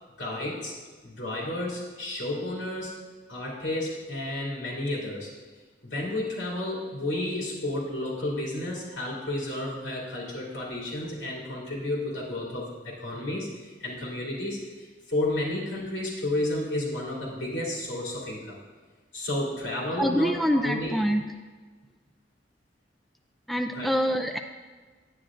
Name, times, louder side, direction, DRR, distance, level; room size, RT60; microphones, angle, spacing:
voice 1, 0.2-0.7 1.0-2.9 3.3-5.3 5.9-18.6 19.1-21.0 23.7-24.0, left 1 dB, 85° left, -5 dB, 2.8 m, -32 dB
voice 2, 20.0-21.2 23.5-24.4, equal, ahead, 5 dB, 0.3 m, -25 dB
9.8 x 9.6 x 2.5 m, 1.4 s
head